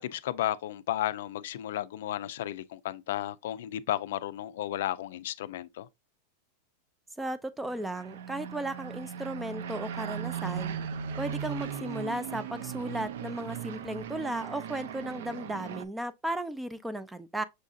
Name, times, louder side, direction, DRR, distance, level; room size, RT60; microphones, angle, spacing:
voice 1, 0.0-5.9, left 12 dB, 75° left, 0.3 m, -33 dB
voice 2, 7.2-10.7 11.2-17.4, right 1 dB, 5° right, 0.3 m, -35 dB
sound 1, 7.6-15.8, right 8 dB, 75° right, 0.5 m, -38 dB
6.3 x 2.6 x 2.4 m
supercardioid pair, 150°, 0 cm